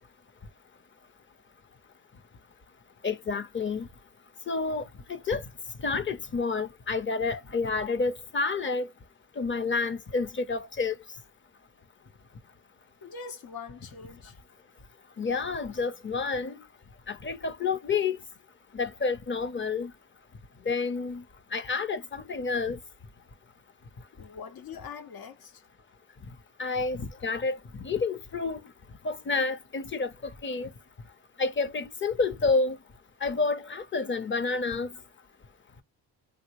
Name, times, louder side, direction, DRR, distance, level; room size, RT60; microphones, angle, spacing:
voice 1, 3.0-3.9 4.5-5.4 5.8-8.9 9.4-10.9 15.2-16.6 17.1-18.2 18.7-19.9 20.7-21.2 21.5-22.8 26.6-27.6 27.8-28.6 29.0-30.1 30.4-30.7 31.4-32.8 33.2-34.9, left 4 dB, 30° left, 0.6 m, -29 dB
voice 2, 13.0-14.4 24.2-25.6, left 6 dB, 75° left, 0.9 m, -43 dB
3.6 x 2.0 x 2.9 m
cardioid pair, 100°, 37 cm